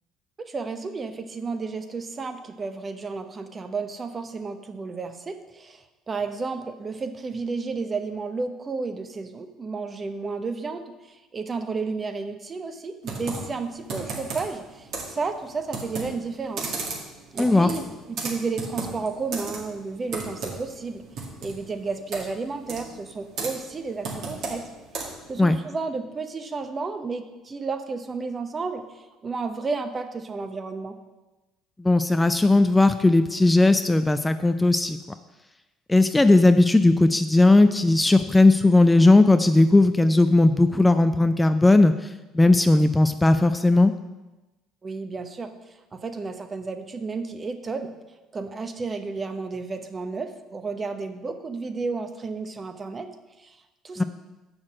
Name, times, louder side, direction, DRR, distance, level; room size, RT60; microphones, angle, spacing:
voice 1, 0.4-16.8 17.3-21.0 21.4-24.6 25.3-31.0 44.8-47.9 48.3-53.1 53.4-53.6 53.8-54.0, right 4 dB, 30° right, 7 dB, 1.0 m, -32 dB
Computer keyboard, 13.0-25.3, right 4 dB, 60° right, 2.0 m, -35 dB
voice 2, 17.4-17.7 25.4-25.6 31.8-35.0 35.9-41.9 42.3-43.9 54.0-54.1, left 2 dB, 15° left, 10 dB, 0.4 m, -17 dB
7.2 x 6.3 x 6.3 m, 1.1 s
hypercardioid pair, 55°, 0 cm